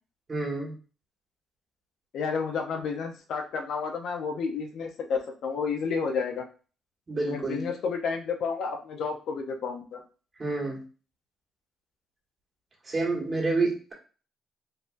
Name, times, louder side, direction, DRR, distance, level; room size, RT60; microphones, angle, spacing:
voice 1, 0.3-0.7 7.1-7.6 10.4-10.8 12.8-13.9, right 3 dB, 30° right, -2 dB, 1.5 m, -28 dB
voice 2, 2.1-6.4 7.3-10.0, left 5 dB, 75° left, 3 dB, 0.7 m, -31 dB
4.0 x 2.7 x 2.6 m, 0.37 s
cardioid pair, 90°, 0 cm